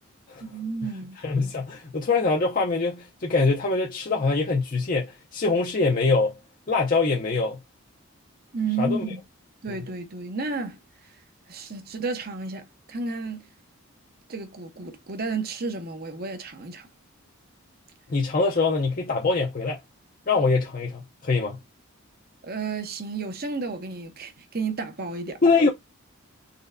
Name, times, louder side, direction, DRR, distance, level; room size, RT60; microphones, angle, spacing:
voice 1, 0.4-1.2 8.5-9.2 9.6-11.1 11.5-13.5 14.3-16.9 22.4-25.4, right 4 dB, 45° right, 0.8 m, -32 dB
voice 2, 1.2-6.3 6.7-7.6 8.8-9.0 9.7-9.8 18.1-19.8 20.3-21.6 25.4-25.7, left 3 dB, 40° left, 0.6 m, -23 dB
4.2 x 3.1 x 2.5 m
head